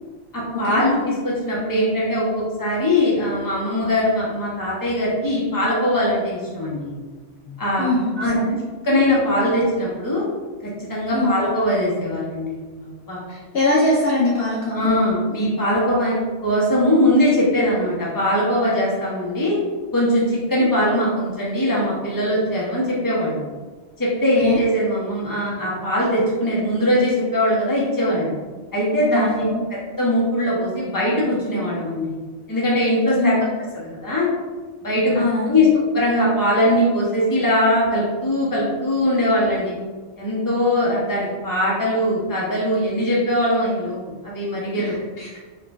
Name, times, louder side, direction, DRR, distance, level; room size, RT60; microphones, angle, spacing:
voice 1, 0.3-6.9 7.6-7.9 8.2-8.3 8.8-10.2 10.6-12.6 12.8-13.2 14.7-16.1 16.4-19.6 19.9-23.4 24.0-28.3 28.7-29.5 30.0-32.2 32.5-33.3 33.8-34.3 34.8-35.7 35.9-39.7 40.2-44.0 44.2-44.9, left 1 dB, 20° left, -6 dB, 0.9 m, -21 dB
voice 2, 7.5-8.6 11.1-11.3 13.3-14.9 24.4-24.6 29.1-29.7 33.1-33.5 35.2-35.6 44.8-45.3, left 2 dB, 65° left, -3 dB, 0.7 m, -22 dB
4.4 x 2.5 x 2.4 m, 1.4 s
omnidirectional pair, 1.2 m